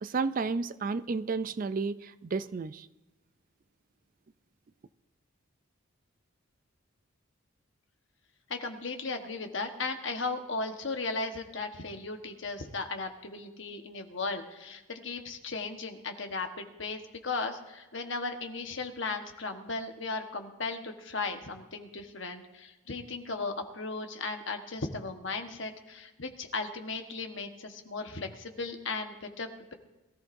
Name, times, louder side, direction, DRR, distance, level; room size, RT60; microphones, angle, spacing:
voice 1, 0.0-2.9, right 4 dB, 40° right, 14 dB, 0.4 m, -32 dB
voice 2, 8.5-29.7, left 3 dB, 60° left, 5 dB, 1.3 m, -36 dB
22.0 x 14.0 x 2.6 m, 1.1 s
head